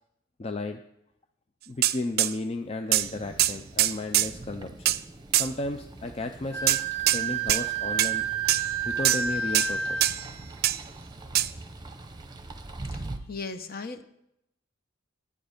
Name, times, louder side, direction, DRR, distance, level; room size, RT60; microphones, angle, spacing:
voice 1, 0.4-0.8 1.7-5.0 5.3-8.3 8.9-10.2, left 2 dB, 30° left, 6 dB, 0.5 m, -34 dB
sound 1, 1.8-2.3 2.9-3.1 3.4-4.3 4.8-5.0 5.3-5.5 6.7-7.2 7.5-7.6 8.0-8.1 8.5-8.7 9.0-9.3 9.5-9.7 10.0-10.3 10.6-10.8 11.3-11.5, right 14 dB, 50° right, 0.4 m, -23 dB
sound 2, 2.9-13.2, right 2 dB, 20° right, 0.8 m, -43 dB
Wind instrument woodwind instrument, 6.5-10.2, right 6 dB, 80° left, 3.4 m, -30 dB
voice 2, 12.9-14.0, left 4 dB, 50° left, 9 dB, 0.8 m, -37 dB
10.5 x 9.6 x 5.0 m, 0.80 s
head